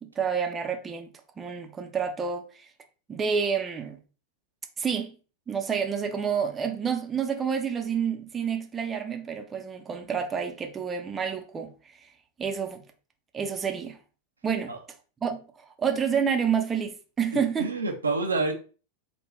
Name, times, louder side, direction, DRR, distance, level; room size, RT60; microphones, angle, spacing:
voice 1, 0.0-2.7 3.1-4.0 4.8-5.2 5.5-11.7 12.0-12.1 12.4-12.8 13.3-14.0 14.4-14.7 15.2-15.4 15.8-17.7, right 7 dB, 20° right, 0.5 m, -29 dB
voice 2, 17.3-18.5, right 3 dB, 75° right, 0.6 m, -28 dB
3.5 x 2.2 x 3.2 m
figure-of-eight pair, 90°, 0 cm